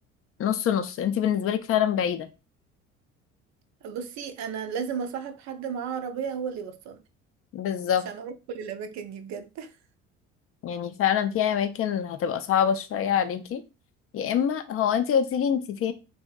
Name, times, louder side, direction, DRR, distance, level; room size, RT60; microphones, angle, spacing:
voice 1, 0.4-2.3 7.5-8.0 10.6-13.6 14.1-15.9, left 9 dB, 40° left, 0.4 m, -25 dB
voice 2, 3.8-7.0 8.1-9.8, right 7 dB, 50° right, 0.5 m, -34 dB
2.7 x 2.6 x 2.2 m
hypercardioid pair, 65°, 35 cm